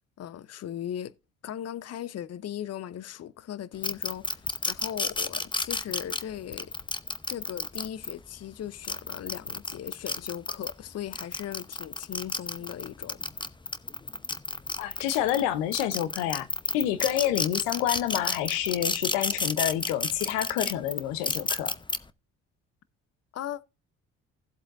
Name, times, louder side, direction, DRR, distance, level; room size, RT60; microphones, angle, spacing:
voice 1, 0.2-1.1 1.4-6.7 7.3-13.5 23.3-23.6, left 10 dB, 50° left, 0.7 m, -38 dB
sound 1, 3.8-8.1 8.7-10.7 11.1-15.4 15.7-22.0, left 3 dB, 15° left, 0.8 m, -31 dB
voice 2, 14.8-16.5 16.7-21.7, left 12 dB, 85° left, 0.9 m, -28 dB
16.5 x 7.7 x 2.5 m
supercardioid pair, 65°, 34 cm